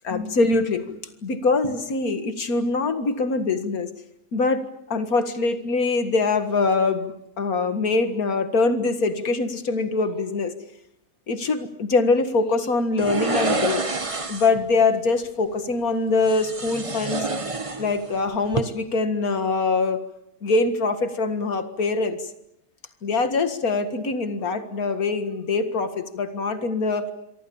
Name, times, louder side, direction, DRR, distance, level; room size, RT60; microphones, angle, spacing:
voice 1, 0.0-1.0 1.2-3.9 4.3-4.6 4.9-10.6 11.3-13.8 14.3-17.3 17.8-20.0 20.4-22.2 23.0-27.1, left 3 dB, 70° left, 9 dB, 2.3 m, -23 dB
sound 1, 13.0-14.6 16.2-18.2 18.4-18.6, right 3 dB, 20° right, 1.3 m, -27 dB
27.0 x 24.0 x 7.2 m, 0.81 s
omnidirectional pair, 1.6 m